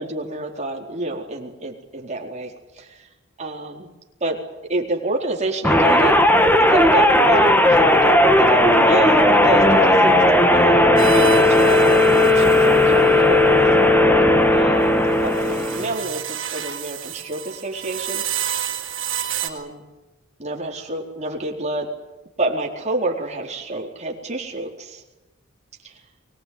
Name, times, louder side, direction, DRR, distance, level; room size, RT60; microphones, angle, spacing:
voice 1, 0.0-3.1 3.4-3.9 4.2-4.4 4.7-6.1 6.6-10.8 11.1-13.7 14.5-18.8 19.4-19.8 20.4-21.9 22.4-25.0 25.8-26.0, right 2 dB, 35° right, 1 dB, 4.4 m, -28 dB
sound 1, 5.6-16.0, left 1 dB, 10° left, 2.1 m, -15 dB
sound 2, 11.0-13.2 15.1-19.5, right 10 dB, 75° right, 4.1 m, -30 dB
24.0 x 19.5 x 9.7 m, 1.1 s
head